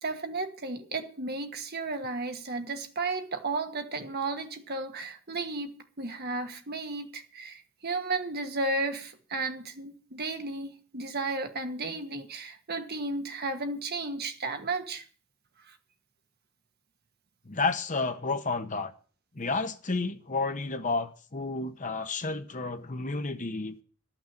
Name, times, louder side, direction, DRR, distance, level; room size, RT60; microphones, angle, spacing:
voice 1, 0.0-15.0 15.6-15.8, right 3 dB, 45° right, 1.4 m, -34 dB
voice 2, 17.4-18.9 19.3-23.7, left 3 dB, 35° left, 1.0 m, -31 dB
13.0 x 6.1 x 9.0 m
head